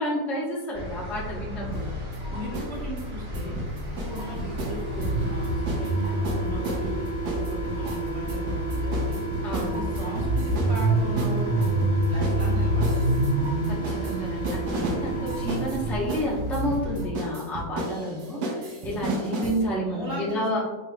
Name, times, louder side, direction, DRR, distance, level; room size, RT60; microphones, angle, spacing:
voice 1, 0.0-2.0 9.4-10.0 13.7-20.6, equal, ahead, -5 dB, 0.4 m, -30 dB
sound 1, 0.7-17.1, right 1 dB, 15° right, 1.1 m, -28 dB
sound 2, 1.7-2.7 3.0-5.9 6.2-19.6, right 1 dB, 70° right, 1.3 m, -34 dB
voice 2, 2.3-3.6 4.1-9.2 9.7-13.3 18.9-19.2 19.9-20.6, equal, 40° right, -5 dB, 1.4 m, -37 dB
sound 3, 4.0-16.1, right 4 dB, 60° left, 1.3 m, -34 dB
5.1 x 4.0 x 2.3 m, 1.2 s
omnidirectional pair, 1.9 m